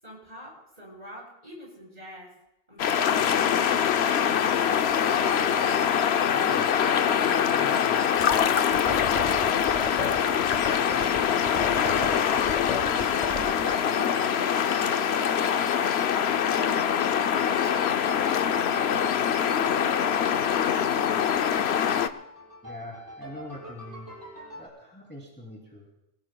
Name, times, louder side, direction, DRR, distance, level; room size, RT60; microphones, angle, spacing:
voice 1, 0.0-2.3 2.7-4.4 13.6-14.4 15.0-17.9 18.4-21.3, left 1 dB, 35° right, -4 dB, 7.9 m, -45 dB
sound 1, 2.8-22.1, left 8 dB, 75° left, 0.9 m, -24 dB
sound 2, 4.9-24.7, equal, 20° right, 6.1 m, -45 dB
voice 2, 5.9-8.7 22.6-24.1 24.5-25.9, equal, 10° left, -3 dB, 2.8 m, -44 dB
sound 3, 8.2-13.7, left 3 dB, 35° left, 1.3 m, -35 dB
28.0 x 17.5 x 2.3 m, 0.83 s
omnidirectional pair, 1.1 m